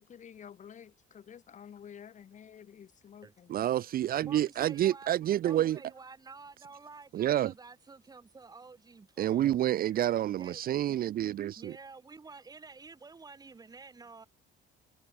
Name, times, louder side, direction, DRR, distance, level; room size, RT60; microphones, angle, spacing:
voice 1, 0.0-3.7, left 8 dB, 40° left, 3.4 m, -51 dB
voice 2, 3.5-5.8 7.1-7.5 9.2-11.8, right 12 dB, 45° right, 0.7 m, -28 dB
voice 3, 4.2-5.2 5.4-9.6 9.9-10.6 11.6-14.3, right 4 dB, 20° right, 4.9 m, -50 dB
cardioid pair, 160°, 20 cm